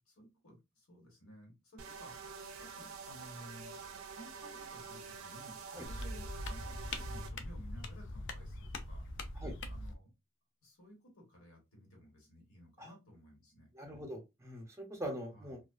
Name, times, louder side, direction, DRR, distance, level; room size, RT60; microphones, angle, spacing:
voice 1, 0.1-3.8 4.1-9.0 9.7-10.1 10.6-13.7 15.3-15.5, equal, 85° left, 1 dB, 1.3 m, -56 dB
sound 1, 1.8-7.3, right 5 dB, 75° right, 0.4 m, -47 dB
sound 2, 5.8-10.0, left 1 dB, 60° left, 0.4 m, -42 dB
voice 2, 13.7-15.6, equal, 15° right, 2 dB, 0.5 m, -43 dB
2.3 x 2.3 x 2.3 m, 0.23 s
head